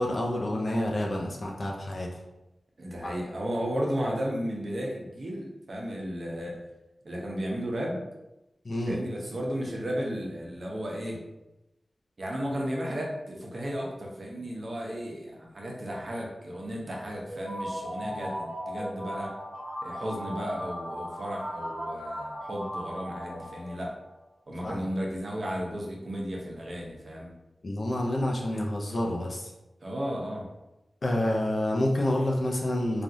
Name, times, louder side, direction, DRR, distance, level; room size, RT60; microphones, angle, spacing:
voice 1, 0.0-2.2 3.0-3.2 8.6-9.0 24.6-24.9 27.6-29.5 31.0-33.0, left 1 dB, 60° left, 0 dB, 0.6 m, -28 dB
voice 2, 2.8-6.6 7.0-8.0 8.9-11.2 12.2-19.4 19.8-23.9 24.5-27.3 29.8-30.5, equal, 55° right, -2 dB, 0.8 m, -34 dB
sound 1, 17.3-24.1, equal, 5° right, 1.2 m, -37 dB
3.3 x 2.4 x 2.6 m, 0.95 s
cardioid pair, 55°, 0 cm